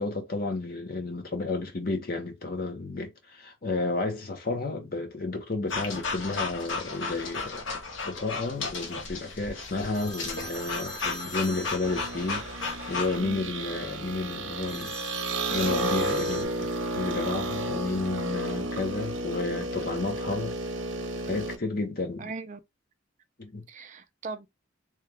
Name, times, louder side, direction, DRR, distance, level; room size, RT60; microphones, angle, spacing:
voice 1, 0.0-14.9 15.5-16.7 16.9-20.6 21.3-22.3 23.4-23.6, left 3 dB, 50° left, 0.9 m, -32 dB
sound 1, 5.7-13.2, left 4 dB, 75° left, 0.9 m, -34 dB
sound 2, 9.9-12.5 14.7-16.5, right 1 dB, 20° left, 0.7 m, -41 dB
sound 3, 11.8-21.6, right 1 dB, 75° right, 0.7 m, -32 dB
voice 2, 13.2-13.5 22.2-22.6 23.7-24.5, right 4 dB, 40° right, 0.4 m, -39 dB
3.2 x 2.3 x 3.3 m
head